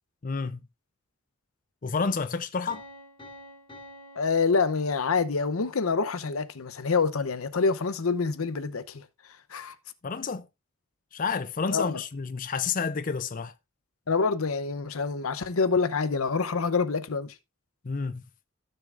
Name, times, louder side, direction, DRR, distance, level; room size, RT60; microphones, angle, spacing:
voice 1, 0.2-0.6 1.8-2.8 10.0-10.5 11.1-13.5 17.8-18.2, left 5 dB, 40° left, 0.5 m, -30 dB
Piano, 2.7-5.5, left 1 dB, 25° left, 3.3 m, -49 dB
voice 2, 4.2-9.0 9.5-9.7 11.7-12.0 14.1-17.3, left 4 dB, 85° left, 0.8 m, -26 dB
15.5 x 6.5 x 2.5 m
head